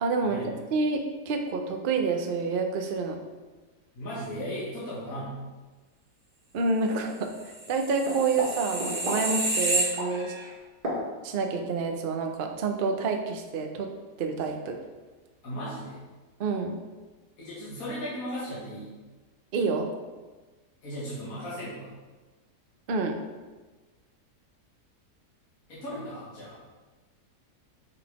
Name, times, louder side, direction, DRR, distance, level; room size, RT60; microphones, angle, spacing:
voice 1, 0.0-3.2 6.5-7.3 7.7-10.3 11.2-13.9 14.2-14.8 16.4-16.8 19.5-19.9 22.9-23.2, right 4 dB, 55° right, 4 dB, 0.6 m, -28 dB
voice 2, 3.9-5.4 15.4-16.0 17.4-19.0 20.8-21.9 25.7-26.6, equal, 55° left, -9 dB, 2.1 m, -36 dB
sound 1, 7.5-10.5 10.8-11.0, right 1 dB, 35° right, 1.5 m, -29 dB
6.6 x 3.9 x 4.8 m, 1.3 s
omnidirectional pair, 1.8 m